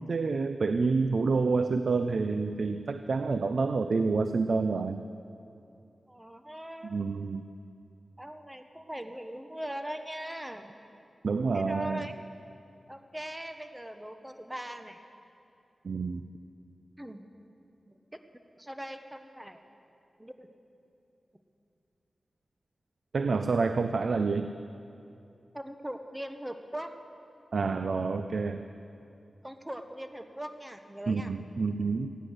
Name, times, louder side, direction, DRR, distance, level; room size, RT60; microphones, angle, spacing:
voice 1, 0.0-5.0 6.8-7.4 11.2-12.1 15.8-16.3 23.1-24.5 27.5-28.6 31.1-32.2, right 4 dB, 70° right, 9 dB, 0.4 m, -28 dB
voice 2, 6.1-7.0 8.2-10.7 11.5-12.1 12.9-15.0 17.0-17.2 18.1-18.2 18.6-19.6 20.2-20.5 25.5-27.0 29.4-31.3, equal, 10° right, 7 dB, 1.1 m, -40 dB
15.5 x 9.7 x 6.4 m, 2.6 s
cardioid pair, 45°, 0 cm